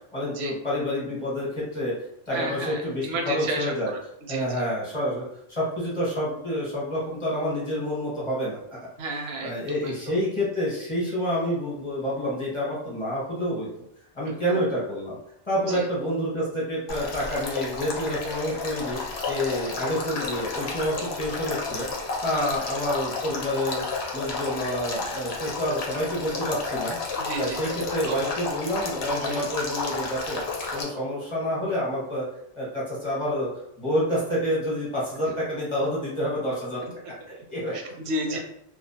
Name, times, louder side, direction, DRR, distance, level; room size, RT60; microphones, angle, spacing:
voice 1, 0.1-1.9 2.3-3.9 4.3-8.6 9.4-13.7 14.1-15.2 15.5-19.0 19.3-21.9 22.2-23.9 24.1-27.0 27.4-30.4 30.7-32.3 32.6-33.5 33.8-36.8 37.3-37.8 38.3-38.4, equal, 30° left, -7 dB, 0.9 m, -28 dB
voice 2, 2.3-4.0 4.3-4.5 9.0-9.5 9.8-9.9 14.2-14.6 15.7-15.8 22.3-22.6 27.2-27.8 28.1-28.2 29.2-29.5 36.8-36.9 37.7-38.4, right 2 dB, 85° right, 2 dB, 0.8 m, -32 dB
Male speech man speaking / Stream / Trickle dribble, 16.9-30.8, left 3 dB, 80° left, 0.8 m, -32 dB
2.3 x 2.0 x 2.7 m, 0.76 s
omnidirectional pair, 1.1 m